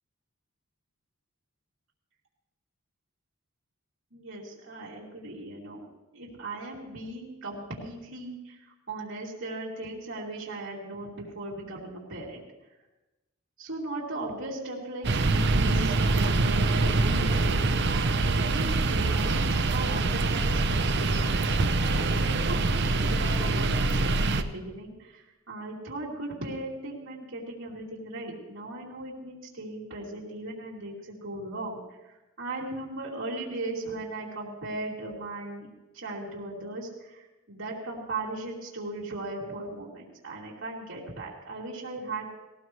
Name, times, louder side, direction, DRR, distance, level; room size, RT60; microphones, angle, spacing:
voice 1, 4.1-5.8 6.1-12.4 13.6-31.8 32.0-35.7 35.9-42.4, right 2 dB, 75° right, -5 dB, 2.8 m, -38 dB
sound 1, 15.0-24.4, right 3 dB, 55° right, 0.7 m, -25 dB
18.5 x 18.0 x 3.2 m, 1.1 s
head